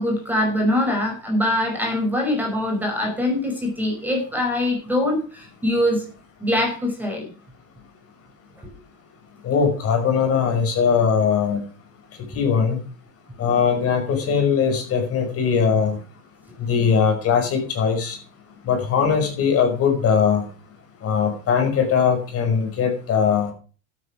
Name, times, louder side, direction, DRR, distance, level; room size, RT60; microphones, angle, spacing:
voice 1, 0.0-6.1 6.4-7.3, left 1 dB, 5° right, 1 dB, 5.4 m, -23 dB
voice 2, 9.4-11.6 12.3-12.8 13.4-16.0 16.6-18.2 18.6-20.4 21.0-23.5, left 6 dB, 35° left, 4 dB, 5.5 m, -20 dB
12.5 x 8.8 x 6.1 m, 0.38 s
supercardioid pair, 130°, 40 cm